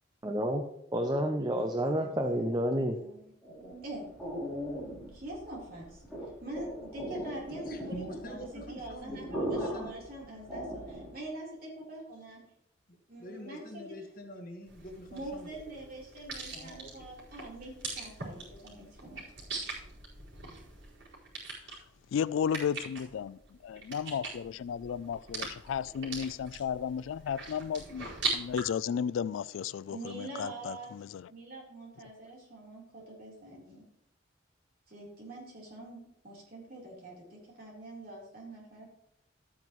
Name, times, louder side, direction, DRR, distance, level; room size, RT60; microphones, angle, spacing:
voice 1, 0.2-0.6 0.9-3.0, equal, 20° right, 0.7 m, -29 dB
voice 2, 1.5-3.3 3.8-4.0 5.1-6.0 6.4-10.8 11.1-12.4 13.1-13.6 15.1-19.2 29.9-30.9 31.3-33.8 34.9-38.9, right 1 dB, 45° right, 3.8 m, -44 dB
sound 1, 3.4-11.3, equal, ahead, 3.6 m, -39 dB
voice 3, 7.7-10.0 12.9-15.8 16.5-17.1, equal, 45° left, 1.6 m, -45 dB
sound 2, 14.7-28.6, right 3 dB, 75° right, 4.8 m, -41 dB
voice 4, 22.1-31.3, left 7 dB, 80° left, 0.3 m, -34 dB
13.0 x 9.3 x 3.1 m
head